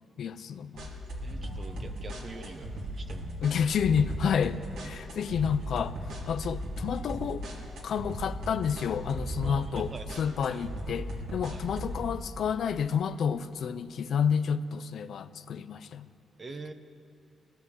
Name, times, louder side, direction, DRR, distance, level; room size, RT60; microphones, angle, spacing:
voice 1, 0.2-0.9 3.4-6.0 6.3-7.4 7.8-16.1, left 7 dB, 70° left, 11 dB, 0.7 m, -30 dB
Hip hop beats synth, 0.8-12.1, equal, 85° right, 3.3 m, -37 dB
voice 2, 1.2-3.4 9.4-10.6 11.5-11.7 16.4-16.7, right 3 dB, 35° right, 8 dB, 1.3 m, -44 dB
20.0 x 16.5 x 8.1 m, 2.6 s
cardioid pair, 100°, 0 cm